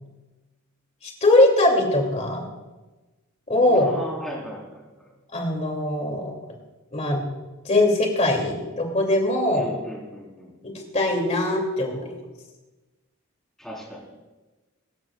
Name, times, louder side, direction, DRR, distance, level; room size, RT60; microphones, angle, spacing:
voice 1, 1.0-2.4 3.5-3.9 5.3-6.4 6.9-7.2 7.6-9.7 10.6-12.1, left 1 dB, 30° left, 1 dB, 2.9 m, -21 dB
voice 2, 3.7-5.1 9.5-10.5 13.6-14.2, equal, ahead, -4 dB, 4.5 m, -37 dB
24.5 x 13.0 x 2.5 m, 1.2 s
head